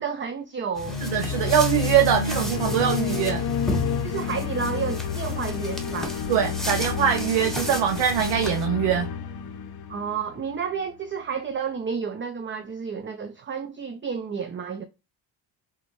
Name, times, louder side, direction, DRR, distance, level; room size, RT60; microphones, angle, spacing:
voice 1, 0.0-1.0 4.0-6.2 9.9-14.8, right 6 dB, 25° right, 0.5 m, -31 dB
sound 1, 0.8-10.8, left 6 dB, 55° left, 0.7 m, -30 dB
sound 2, 0.8-8.7, equal, ahead, 1.0 m, -35 dB
voice 2, 1.0-3.4 6.3-9.1, right 9 dB, 85° right, 0.6 m, -23 dB
3.5 x 2.2 x 3.0 m
supercardioid pair, 60°, 44 cm